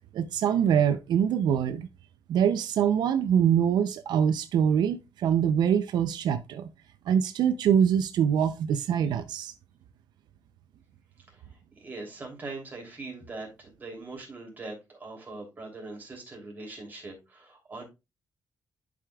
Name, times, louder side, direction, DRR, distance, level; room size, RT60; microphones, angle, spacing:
voice 1, 0.1-1.9 2.3-6.7 7.1-9.5, right 8 dB, 85° right, 0.5 m, -24 dB
voice 2, 11.3-17.8, right 3 dB, 25° right, 2.9 m, -42 dB
11.0 x 4.9 x 2.3 m
wide cardioid pair, 150°, 7 cm